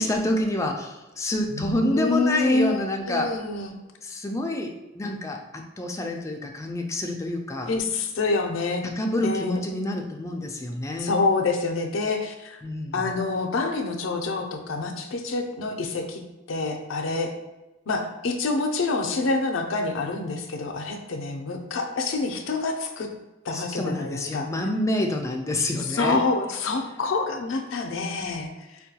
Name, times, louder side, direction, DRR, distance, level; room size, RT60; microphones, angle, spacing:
voice 1, 0.0-3.3 4.0-7.7 9.0-11.2 12.6-13.1 23.5-26.2, left 1 dB, 15° left, 2 dB, 0.3 m, -28 dB
voice 2, 1.5-3.8 7.6-8.8 9.2-9.6 11.0-12.6 12.9-16.2 16.5-17.3 17.9-23.1 23.5-24.5 25.8-28.8, left 3 dB, 80° left, 4 dB, 0.4 m, -27 dB
4.4 x 2.2 x 2.7 m, 1.1 s
head